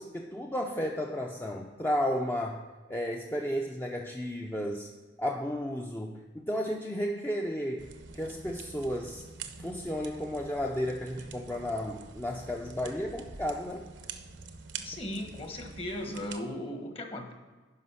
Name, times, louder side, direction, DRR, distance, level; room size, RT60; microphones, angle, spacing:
voice 1, 0.0-2.6 2.9-4.9 5.2-7.9 8.1-9.2 9.6-13.9, equal, 10° left, 1 dB, 0.6 m, -33 dB
sound 1, 7.8-16.4, right 5 dB, 70° right, 0.8 m, -46 dB
voice 2, 14.8-17.3, left 1 dB, 30° left, 4 dB, 1.3 m, -37 dB
11.5 x 5.1 x 5.6 m, 1.3 s
head